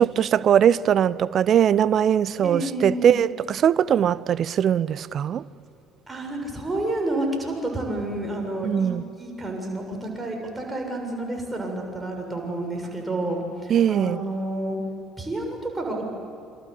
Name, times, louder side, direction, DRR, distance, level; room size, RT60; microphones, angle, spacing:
voice 1, 0.0-5.4 8.6-9.1 13.7-14.2, right 9 dB, 45° right, 0.7 m, -20 dB
voice 2, 2.4-3.2 6.1-14.8 15.2-16.0, right 1 dB, 15° right, 7.1 m, -30 dB
28.0 x 25.0 x 8.4 m
figure-of-eight pair, 55°, 0 cm